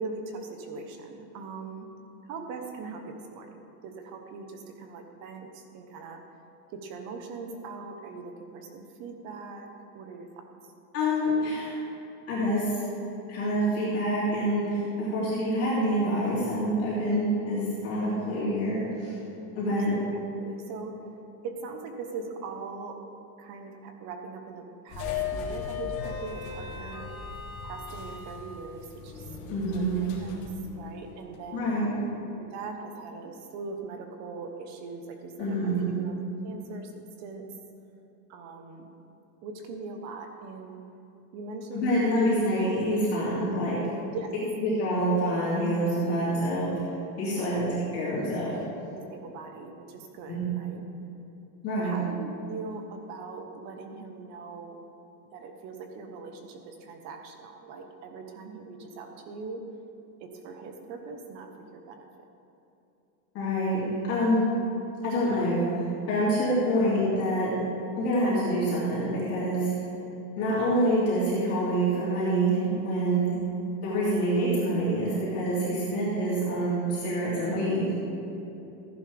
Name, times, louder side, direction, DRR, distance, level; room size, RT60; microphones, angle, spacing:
voice 1, 0.0-1.9 2.2-6.2 6.7-9.7 9.9-10.4 15.0-15.1 18.3-18.4 19.7-20.9 21.4-23.0 23.4-27.1 27.6-29.3 29.7-31.8 32.4-36.2 36.4-37.5 38.3-38.9 39.4-40.8 41.3-42.2 44.1-44.3 47.5-47.6 48.9-50.8 51.8-54.9 55.3-59.6 60.2-62.1 66.4-66.5 73.3-73.4, right 4 dB, 35° right, 4 dB, 1.1 m, -41 dB
voice 2, 10.9-11.7 12.3-12.8 13.3-19.1 19.5-20.0 29.5-30.0 31.5-32.0 35.4-35.9 41.7-43.8 44.6-46.7 47.2-48.6 50.3-50.4 51.6-51.9 63.3-64.4 65.0-67.5 68.0-69.7 70.4-73.3 73.8-77.9, equal, 30° left, -9 dB, 3.1 m, -26 dB
sound 1, 24.9-31.4, left 6 dB, 60° left, 2.8 m, -37 dB
15.0 x 10.5 x 3.5 m, 2.9 s
supercardioid pair, 170°, 48 cm